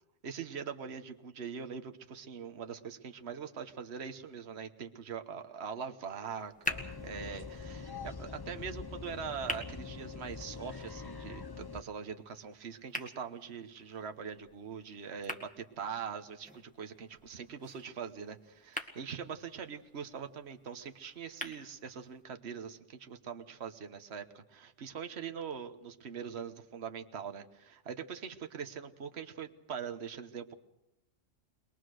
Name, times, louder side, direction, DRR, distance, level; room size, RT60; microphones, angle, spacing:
voice 1, 0.2-30.5, right 6 dB, 60° right, 7 dB, 1.4 m, -42 dB
sound 1, 6.2-22.2, left 1 dB, 5° left, 1.8 m, -46 dB
sound 2, 6.7-11.8, left 4 dB, 20° left, 0.7 m, -44 dB
23.5 x 21.5 x 6.4 m, 0.83 s
omnidirectional pair, 1.3 m